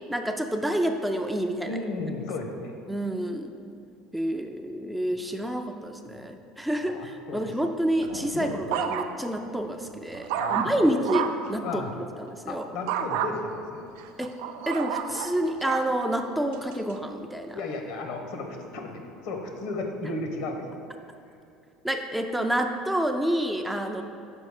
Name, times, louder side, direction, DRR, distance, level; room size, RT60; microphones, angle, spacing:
voice 1, 0.1-1.8 2.9-3.5 4.1-11.8 12.2-12.7 14.2-14.3 14.7-17.6 21.8-24.0, right 1 dB, 5° right, 5 dB, 0.3 m, -28 dB
voice 2, 1.7-2.7 5.0-5.1 5.4-5.5 6.0-6.3 6.8-7.5 8.3-8.5 10.3-11.0 11.6-12.0 12.5-13.9 17.5-20.7, left 2 dB, 75° left, 3 dB, 0.9 m, -34 dB
sound 1, 8.0-9.4 9.8-11.5 12.9-13.3 14.0-15.9 16.5-16.9, right 8 dB, 85° right, 0.3 m, -31 dB
5.3 x 4.9 x 4.8 m, 2.6 s
supercardioid pair, 115°, 0 cm